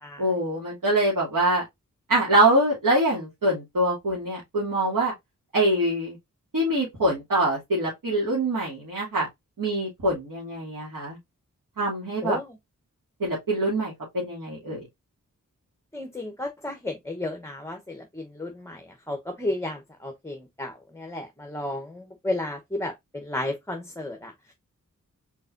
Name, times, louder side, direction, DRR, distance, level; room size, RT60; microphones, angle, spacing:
voice 1, 0.2-1.6 2.1-5.1 5.5-6.2 6.5-9.3 9.6-11.2 11.8-12.4 13.2-14.9, right 1 dB, 80° right, 2.7 m, -24 dB
voice 2, 12.2-12.5 15.9-24.5, left 1 dB, 10° left, 1.0 m, -33 dB
4.6 x 4.4 x 2.6 m
wide cardioid pair, 65°, 32 cm